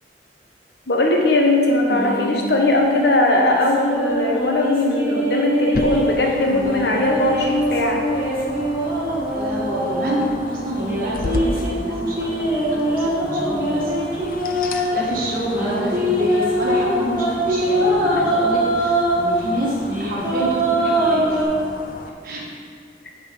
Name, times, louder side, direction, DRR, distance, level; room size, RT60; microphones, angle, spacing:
voice 1, 0.9-8.0, left 2 dB, 70° left, 0 dB, 1.1 m, -19 dB
sound 1, 1.9-6.1 6.5-10.3 10.8-15.0 15.5-19.2 19.7-21.4, right 1 dB, 10° right, 1.7 m, -22 dB
sound 2, 5.7-22.1, left 2 dB, 50° left, 0.5 m, -34 dB
voice 2, 9.3-13.9 14.7-21.4 22.2-22.5, right 1 dB, 50° right, -3 dB, 1.4 m, -28 dB
8.8 x 4.0 x 5.0 m, 2.1 s
head